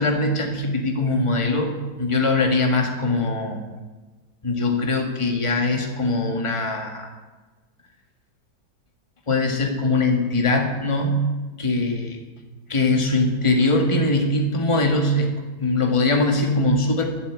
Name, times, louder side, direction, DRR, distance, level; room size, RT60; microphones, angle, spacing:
voice 1, 0.0-3.6 4.4-7.1 9.3-11.2 11.6-12.2 12.7-17.0, left 2 dB, 20° left, 3 dB, 1.8 m, -22 dB
11.5 x 11.5 x 8.0 m, 1.3 s
omnidirectional pair, 1.8 m